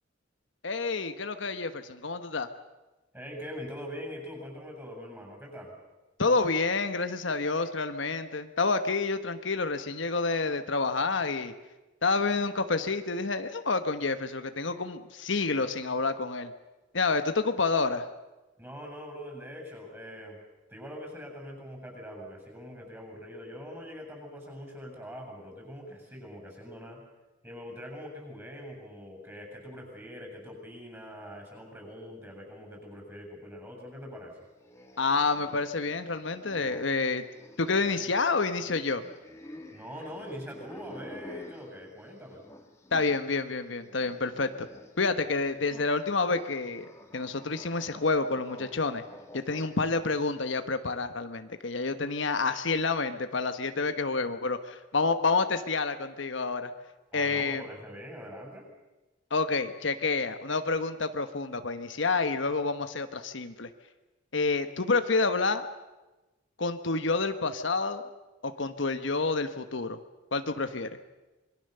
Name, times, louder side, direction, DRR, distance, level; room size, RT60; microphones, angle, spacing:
voice 1, 0.6-2.5 6.2-11.5 12.0-16.5 16.9-18.1 35.0-37.2 37.6-39.0 42.9-44.7 45.0-49.0 49.3-56.7 57.1-57.6 59.3-63.7 64.3-65.7 66.6-68.0 68.4-70.0 70.3-70.9, left 3 dB, 70° left, 9 dB, 1.2 m, -28 dB
voice 2, 3.1-5.8 18.6-20.4 20.7-27.0 27.4-34.4 39.7-42.4 57.1-58.6, equal, 10° right, 1 dB, 7.5 m, -43 dB
sound 1, 34.6-43.3 43.6-50.4, left 1 dB, 15° left, 2.8 m, -50 dB
26.0 x 23.0 x 6.8 m, 1.1 s
head